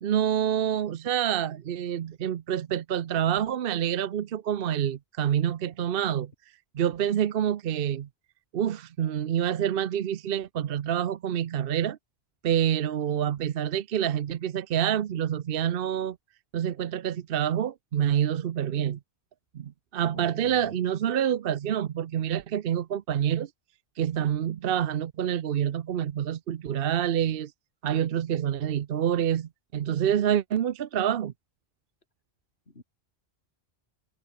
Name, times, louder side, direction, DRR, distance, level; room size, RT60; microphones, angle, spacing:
voice 1, 0.0-6.3 6.7-8.1 8.5-12.0 12.4-16.2 16.5-19.0 19.5-23.5 24.0-27.5 27.8-31.3, right 10 dB, 65° right, 0.9 m, -27 dB
voice 2, 20.1-20.8 32.7-32.8, left 2 dB, 75° left, 4.1 m, -46 dB
omnidirectional pair, 1.1 m